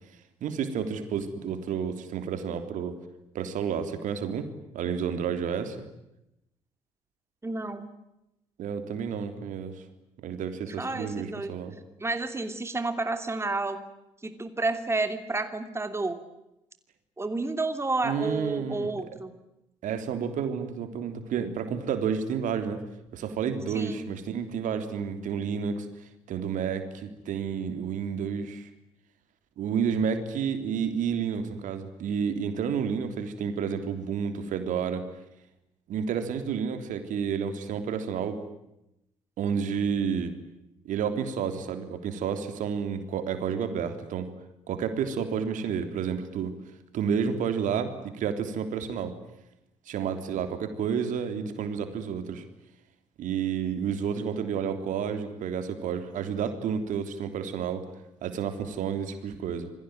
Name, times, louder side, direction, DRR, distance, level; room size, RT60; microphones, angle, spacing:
voice 1, 0.4-3.0 3.3-5.8 8.6-9.8 10.2-11.8 18.0-18.9 19.8-22.8 23.1-25.9 26.3-28.7 29.6-35.1 35.9-38.4 39.4-40.3 40.9-44.3 44.7-46.5 46.9-49.2 49.9-52.4 53.2-57.8 58.2-59.7, right 7 dB, 55° right, 8 dB, 3.5 m, -30 dB
voice 2, 7.4-7.9 10.8-13.8 14.2-16.2 17.2-19.3 23.7-24.1, right 3 dB, 15° right, 8 dB, 3.0 m, -31 dB
28.0 x 22.0 x 9.2 m, 0.89 s
figure-of-eight pair, 50°, 16 cm